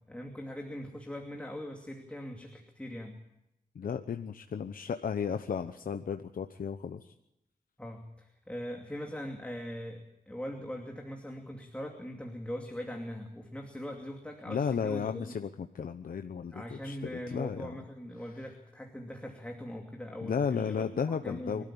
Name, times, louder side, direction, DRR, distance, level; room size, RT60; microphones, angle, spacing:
voice 1, 0.0-3.2 7.8-15.3 16.5-21.6, equal, 10° left, 2 dB, 2.6 m, -41 dB
voice 2, 3.7-7.1 14.5-17.8 20.2-21.6, left 6 dB, 80° left, 7 dB, 1.0 m, -34 dB
25.0 x 13.0 x 8.7 m, 0.84 s
wide cardioid pair, 100°, 15 cm